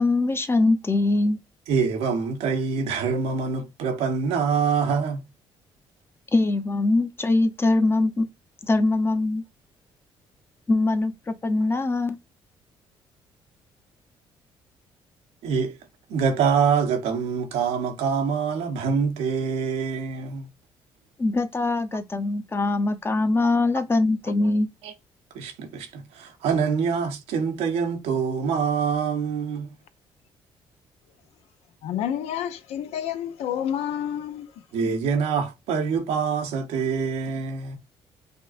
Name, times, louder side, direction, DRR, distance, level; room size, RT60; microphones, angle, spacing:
voice 1, 0.0-1.4 6.3-8.3 8.6-9.4 10.7-12.2 21.2-24.7, left 2 dB, 20° left, 0.7 m, -22 dB
voice 2, 1.7-5.3 15.4-15.8 16.1-20.5 24.8-24.9 25.3-29.7 34.7-37.8, right 6 dB, 90° right, 0.9 m, -25 dB
voice 3, 31.8-34.5, left 10 dB, 80° left, 0.5 m, -29 dB
5.3 x 2.2 x 2.5 m
cardioid pair, 90°, 10 cm